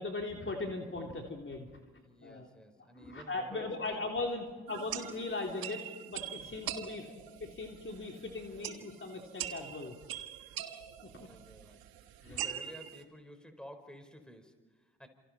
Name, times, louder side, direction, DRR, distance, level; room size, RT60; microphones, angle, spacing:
voice 1, 0.0-1.8 2.2-2.5 2.9-7.1 7.4-9.9 11.2-11.3 12.2-12.5, left 3 dB, 30° left, 1 dB, 3.4 m, -39 dB
voice 2, 2.0-4.0 6.4-6.7 11.1-11.9 12.2-15.1, equal, ahead, 7 dB, 4.6 m, -52 dB
sound 1, 4.7-13.0, right 11 dB, 65° right, 1.6 m, -43 dB
29.0 x 27.5 x 4.4 m, 1.4 s
hypercardioid pair, 45°, 38 cm